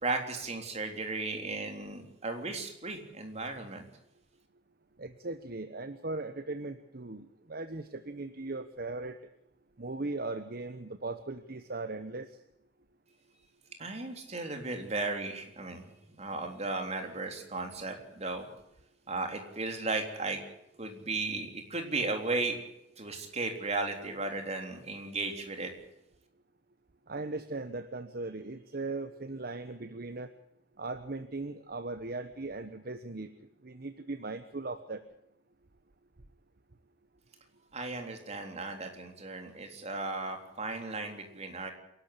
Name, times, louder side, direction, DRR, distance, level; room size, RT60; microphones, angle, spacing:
voice 1, 0.0-3.8 13.8-15.8 16.2-18.5 19.1-20.4 20.8-22.6 23.0-25.7 37.7-41.7, right 3 dB, 35° right, 4 dB, 3.5 m, -35 dB
voice 2, 5.0-9.2 9.8-12.3 27.1-30.3 30.8-33.3 33.6-35.0, right 3 dB, 55° right, 10 dB, 1.1 m, -38 dB
27.0 x 12.0 x 8.4 m, 0.83 s
head